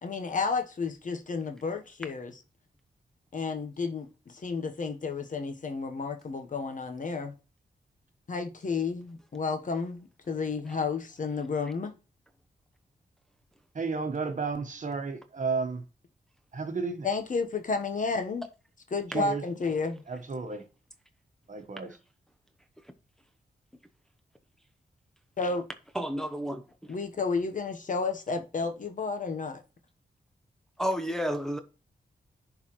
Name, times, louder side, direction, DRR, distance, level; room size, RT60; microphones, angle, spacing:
voice 1, 0.0-2.3 3.3-7.3 8.3-11.9 17.0-18.4 18.9-20.0 25.4-25.6 26.9-29.6, left 4 dB, 50° left, 1.1 m, -31 dB
voice 2, 13.7-15.8 16.5-17.1 19.1-19.4 20.1-20.6 21.5-21.9, right 4 dB, 50° right, 1.2 m, -32 dB
voice 3, 25.9-26.6 30.8-31.6, equal, 5° left, 0.7 m, -30 dB
10.5 x 4.0 x 3.1 m
wide cardioid pair, 95°, 17 cm